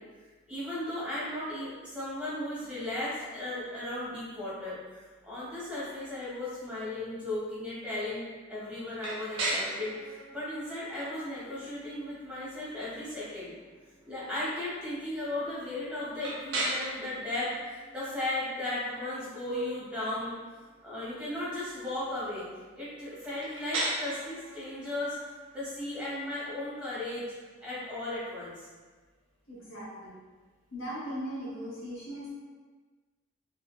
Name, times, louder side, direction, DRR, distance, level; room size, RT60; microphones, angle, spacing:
voice 1, 0.5-13.5 14.1-20.3 20.8-22.5 22.8-25.2 25.5-27.2 27.6-28.7, left 1 dB, 5° right, -10 dB, 0.7 m, -36 dB
sound 1, 9.0-28.8, right 2 dB, 75° right, 0.6 m, -40 dB
voice 2, 29.5-30.2 30.7-32.3, equal, 70° left, -7 dB, 0.9 m, -38 dB
3.4 x 2.0 x 2.2 m, 1.4 s
head